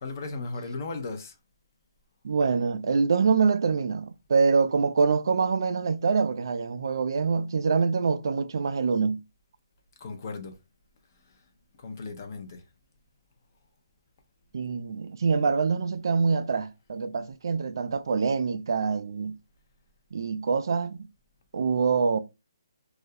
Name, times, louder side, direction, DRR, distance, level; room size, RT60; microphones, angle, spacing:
voice 1, 0.0-1.3 10.0-10.6 11.8-12.6, left 3 dB, 40° left, 0.5 m, -36 dB
voice 2, 2.2-9.2 14.5-19.3 20.1-21.0 21.5-22.2, right 5 dB, 60° right, 0.3 m, -25 dB
2.3 x 2.0 x 2.6 m
hypercardioid pair, 165°, 2 cm